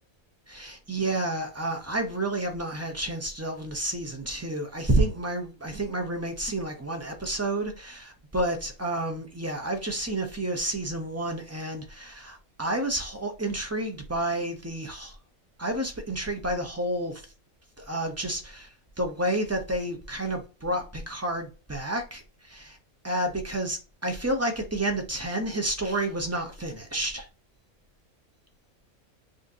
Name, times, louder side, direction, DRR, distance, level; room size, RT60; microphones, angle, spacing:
voice 1, 0.5-15.2 15.6-17.2 17.8-18.7 19.0-22.8 23.0-27.3, right 1 dB, 20° right, 0.4 m, -30 dB
6.5 x 2.5 x 2.6 m
omnidirectional pair, 1.4 m